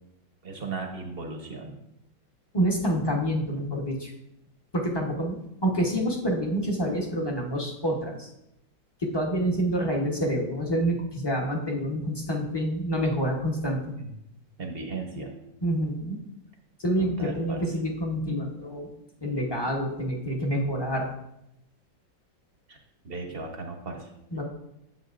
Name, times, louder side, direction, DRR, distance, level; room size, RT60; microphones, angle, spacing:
voice 1, 0.4-1.8 13.9-14.1 14.6-15.3 17.0-17.6 22.7-22.8 23.0-24.1, right 3 dB, 45° right, 3 dB, 0.7 m, -36 dB
voice 2, 2.5-4.1 4.7-8.3 9.0-13.8 15.6-16.2 16.8-18.9 19.2-21.1 24.3-24.4, equal, 20° left, 0 dB, 0.6 m, -27 dB
9.7 x 7.7 x 2.5 m, 0.84 s
omnidirectional pair, 2.1 m